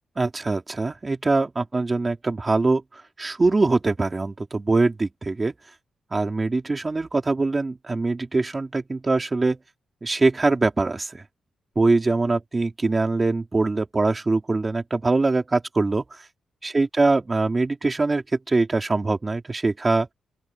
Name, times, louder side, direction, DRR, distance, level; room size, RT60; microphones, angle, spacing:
voice 1, 0.2-2.8 3.2-5.5 6.1-9.6 10.0-11.2 11.8-16.0 16.6-20.1, right 3 dB, 20° right, 3.9 m, -23 dB
open air
wide cardioid pair, 145°, 0 cm